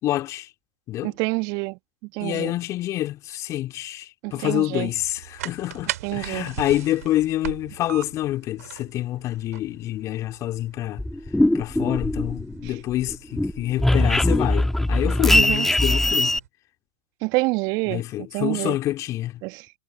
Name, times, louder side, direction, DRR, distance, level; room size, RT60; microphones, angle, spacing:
voice 1, 0.0-0.5 0.9-1.1 2.2-11.0 11.5-16.3 17.9-19.4, left 14 dB, 35° left, 2.6 m, -27 dB
voice 2, 1.0-1.8 2.1-2.5 4.2-4.9 6.0-6.5 12.6-12.8 15.3-15.7 17.2-18.8 19.4-19.7, right 27 dB, 45° right, 1.6 m, -27 dB
sound 1, 4.7-16.5, right 13 dB, 65° right, 5.7 m, -40 dB
sound 2, 11.0-12.7 13.0-16.4, left 1 dB, 5° left, 1.7 m, -21 dB
figure-of-eight pair, 100°, 9 cm